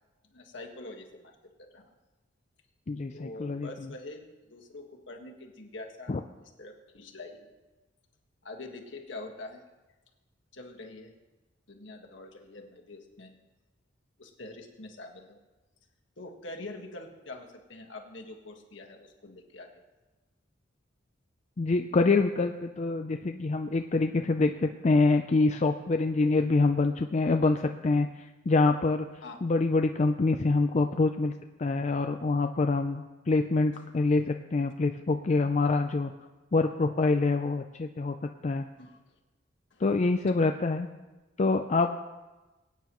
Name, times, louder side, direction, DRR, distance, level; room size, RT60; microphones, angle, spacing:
voice 1, 0.3-1.3 1.6-1.8 3.1-6.2 6.6-7.5 8.4-9.6 10.5-11.1 11.7-13.4 14.2-15.4 16.2-19.7 29.2-29.4 38.8-39.0 39.7-39.8, left 2 dB, 65° left, 2 dB, 1.6 m, -45 dB
voice 2, 2.9-3.7 6.1-6.2 21.6-29.1 29.4-31.3 31.6-36.1 36.5-38.1 38.4-38.6 39.8-40.9 41.4-41.9, left 3 dB, 35° left, 5 dB, 0.4 m, -25 dB
23.5 x 9.1 x 3.1 m, 1.2 s
head